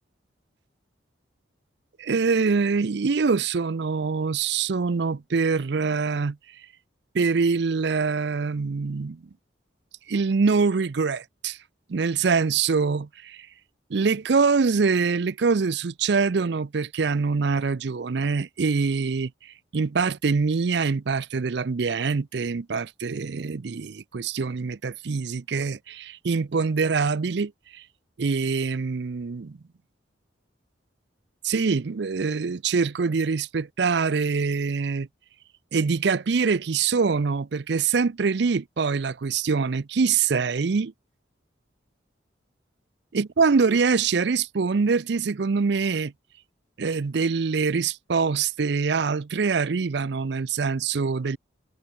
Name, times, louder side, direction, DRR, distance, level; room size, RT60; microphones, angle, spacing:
voice 1, 2.0-6.4 7.1-9.2 10.1-11.6 11.9-13.5 13.9-27.8 28.2-29.6 31.4-35.1 35.7-40.9 43.1-46.1 46.8-51.4, right 5 dB, 65° right, 0.5 m, -24 dB
head